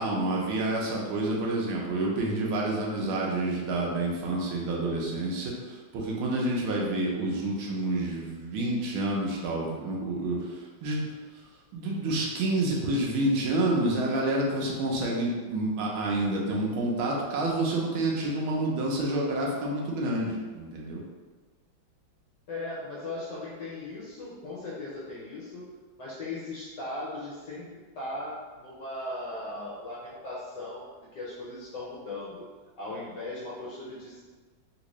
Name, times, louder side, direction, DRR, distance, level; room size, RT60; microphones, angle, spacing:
voice 1, 0.0-11.0 11.3-11.4 11.7-21.0, right 2 dB, 85° right, -2 dB, 1.5 m, -28 dB
voice 2, 22.5-25.7 26.0-32.4 32.8-34.2, left 2 dB, 70° left, -7 dB, 1.2 m, -38 dB
3.8 x 2.5 x 3.0 m, 1.4 s
omnidirectional pair, 2.2 m